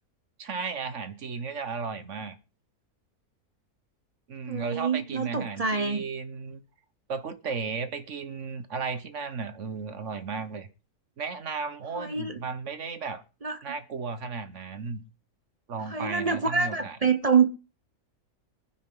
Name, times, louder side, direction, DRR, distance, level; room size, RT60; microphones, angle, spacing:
voice 1, 0.4-2.4 4.3-6.6 7.1-10.7 11.2-13.2 13.6-15.0 15.7-17.0, right 5 dB, 55° right, 1.4 m, -34 dB
voice 2, 4.5-6.0 11.9-12.4 13.4-13.7 15.9-17.5, right 5 dB, 35° right, 0.6 m, -26 dB
23.0 x 10.0 x 3.8 m
omnidirectional pair, 1.6 m